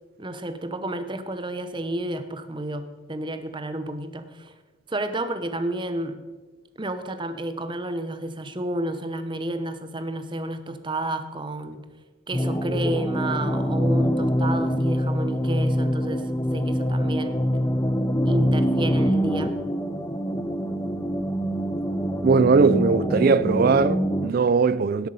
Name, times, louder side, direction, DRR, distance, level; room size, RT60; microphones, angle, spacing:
voice 1, 0.2-4.5 4.9-6.2 6.8-11.9 12.3-17.4 18.2-19.6, right 1 dB, 25° right, 0.8 m, -31 dB
sound 1, 12.3-24.3, equal, 15° left, 0.5 m, -24 dB
voice 2, 22.2-25.1, right 4 dB, 50° right, 0.4 m, -19 dB
17.5 x 8.1 x 5.5 m
head